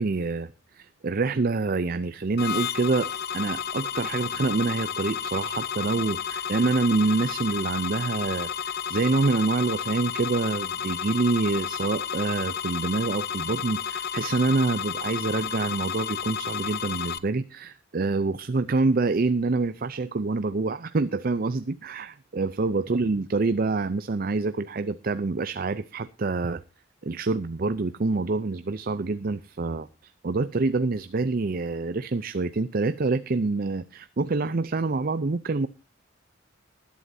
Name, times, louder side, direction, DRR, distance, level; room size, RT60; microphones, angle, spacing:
voice 1, 0.0-26.6 27.0-35.7, right 3 dB, 45° right, 0.5 m, -26 dB
sound 1, 2.4-17.2, left 7 dB, 50° left, 0.7 m, -32 dB
20.0 x 11.5 x 2.7 m
head